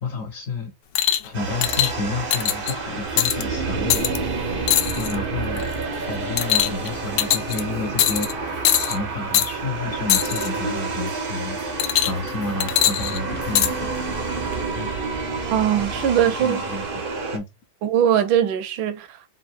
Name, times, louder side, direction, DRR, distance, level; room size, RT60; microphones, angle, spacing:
voice 1, 0.0-0.7 1.2-5.8 6.1-15.1 15.8-17.0 17.3-17.5, left 3 dB, 60° left, 0.9 m, -31 dB
sound 1, 1.0-1.3 1.6-1.9 2.3-2.7 3.2-3.4 3.9-4.2 4.7-5.2 5.6-5.8 6.4-6.9 7.2-7.6 8.0-8.3 8.6-9.0 9.3-9.5 10.1-10.5 11.8-12.3 12.6-13.7 14.5-14.6, left 11 dB, 75° left, 1.2 m, -21 dB
sound 2, 1.3-17.4, right 4 dB, 60° right, 0.5 m, -29 dB
voice 2, 15.5-16.6 17.8-19.2, right 9 dB, 80° right, 1.4 m, -20 dB
3.7 x 2.5 x 4.2 m
omnidirectional pair, 2.1 m